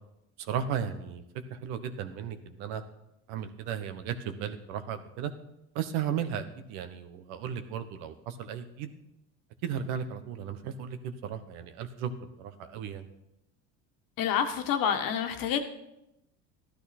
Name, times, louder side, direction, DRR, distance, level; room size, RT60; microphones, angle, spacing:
voice 1, 0.4-1.2 1.5-2.8 3.3-5.3 5.7-8.9 9.6-12.1 12.4-13.0, right 8 dB, 75° right, 9 dB, 1.4 m, -35 dB
voice 2, 14.2-15.6, left 8 dB, 60° left, 7 dB, 1.6 m, -28 dB
13.0 x 12.0 x 4.4 m, 0.86 s
supercardioid pair, 95°, 38 cm